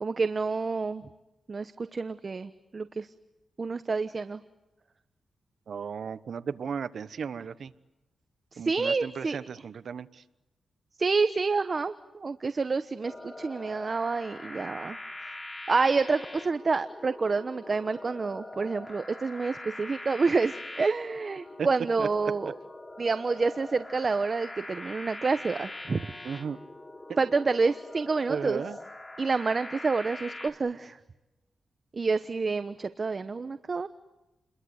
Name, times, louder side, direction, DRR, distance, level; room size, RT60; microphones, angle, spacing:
voice 1, 0.0-1.1 1.5-3.1 3.6-4.4 8.5-9.5 11.0-15.0 15.7-22.5 23.0-26.1 27.2-28.6 29.2-31.0 31.9-33.9, right 4 dB, 40° right, 11 dB, 1.0 m, -28 dB
voice 2, 5.7-7.7 8.6-10.2 21.6-21.7 22.0-22.1 26.2-26.6 28.3-28.8, right 6 dB, 65° right, 13 dB, 1.2 m, -35 dB
sound 1, 13.0-30.5, left 2 dB, 20° left, 3.1 m, -43 dB
30.0 x 22.5 x 8.0 m, 1.0 s
cardioid pair, 100°, 0 cm